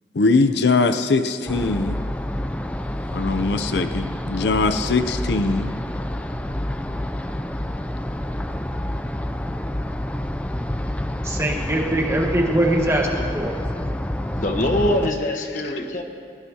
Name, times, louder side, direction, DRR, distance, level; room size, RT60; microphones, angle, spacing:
voice 1, 0.1-2.0 3.1-5.7, left 3 dB, 80° left, 10 dB, 0.6 m, -21 dB
sound 1, 1.5-15.1, left 1 dB, 10° left, 0.4 m, -28 dB
voice 2, 11.2-13.5, right 1 dB, 15° right, 0 dB, 1.4 m, -22 dB
voice 3, 14.3-16.0, left 1 dB, 45° left, 3 dB, 1.3 m, -23 dB
19.0 x 19.0 x 2.9 m, 2.3 s
head